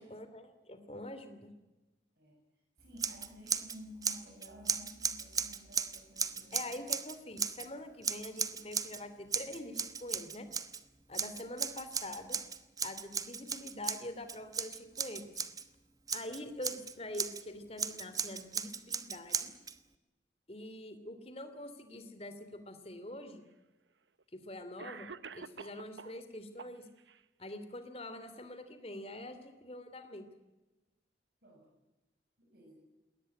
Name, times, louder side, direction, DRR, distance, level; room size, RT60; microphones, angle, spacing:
voice 1, 0.0-1.5 6.5-10.5 11.1-12.4 12.8-15.3 16.1-19.5 20.5-23.4 24.4-26.9 27.4-30.3, left 1 dB, 35° left, 10 dB, 2.8 m, -45 dB
voice 2, 2.8-6.7 11.1-11.3 31.4-31.6 32.4-32.8, left 1 dB, 55° right, 0 dB, 6.8 m, -53 dB
Scissors, 3.0-3.8 4.0-7.7 8.0-9.0 9.3-10.8 11.1-15.6 16.1-17.4 17.8-19.7, right 6 dB, 20° right, 1.0 m, -36 dB
Cough, 23.1-23.2 24.2-24.3 24.8-26.2 26.6-27.2, right 5 dB, 80° right, 1.0 m, -48 dB
21.5 x 18.5 x 10.0 m, 1.1 s
head